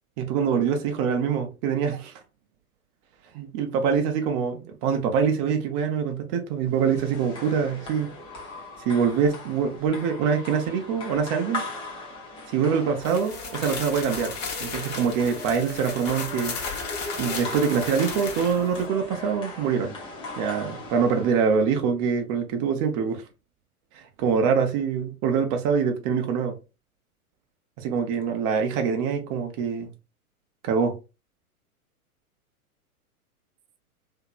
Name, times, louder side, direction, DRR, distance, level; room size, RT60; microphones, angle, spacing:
voice 1, 0.2-2.1 3.3-8.1 8.9-11.6 12.5-14.3 14.6-16.6 17.2-19.9 20.4-23.2 24.2-26.6 27.8-29.9 30.6-31.0, right 6 dB, 30° right, 0.7 m, -24 dB
sound 1, 6.8-21.6, left 2 dB, 10° left, 0.5 m, -38 dB
sound 2, 13.0-18.8, left 5 dB, 45° left, 1.1 m, -35 dB
2.8 x 2.8 x 2.3 m
figure-of-eight pair, 105°, 45 cm